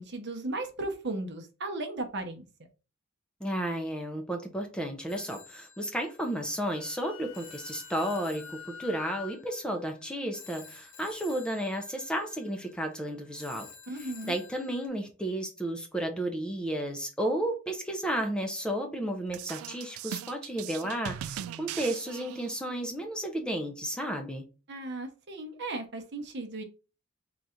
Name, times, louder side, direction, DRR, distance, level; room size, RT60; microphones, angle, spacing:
voice 1, 0.0-2.4 13.9-14.3 24.7-26.6, right 2 dB, 55° right, 0.8 m, -36 dB
voice 2, 3.4-13.7 13.9-24.4, right 1 dB, 5° left, 0.5 m, -33 dB
Telephone, 5.1-14.9, left 6 dB, 90° left, 0.9 m, -52 dB
Wind instrument woodwind instrument, 6.4-9.4, left 7 dB, 70° left, 0.7 m, -46 dB
sound 1, 19.3-22.7, right 10 dB, 85° right, 0.3 m, -39 dB
4.0 x 2.4 x 4.3 m
head